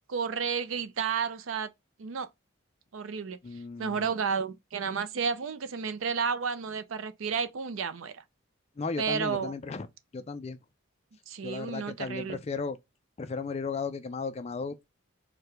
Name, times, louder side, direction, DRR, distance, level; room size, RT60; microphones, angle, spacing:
voice 1, 0.1-1.7 2.0-2.3 2.9-3.4 3.8-8.2 9.0-9.5 11.3-12.4, right 6 dB, 70° right, 0.5 m, -31 dB
voice 2, 3.4-4.1 8.8-9.9 10.1-10.6 11.4-12.8 13.2-14.9, left 4 dB, 30° left, 0.3 m, -35 dB
4.7 x 2.2 x 3.2 m
head